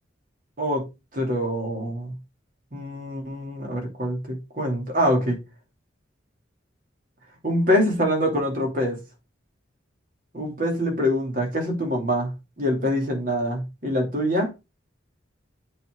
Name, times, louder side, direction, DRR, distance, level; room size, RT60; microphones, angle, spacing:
voice 1, 1.1-2.1 2.7-5.4 7.4-9.0 10.3-12.3 12.6-14.5, equal, 45° right, 2.7 m, -24 dB
8.1 x 4.2 x 3.8 m
head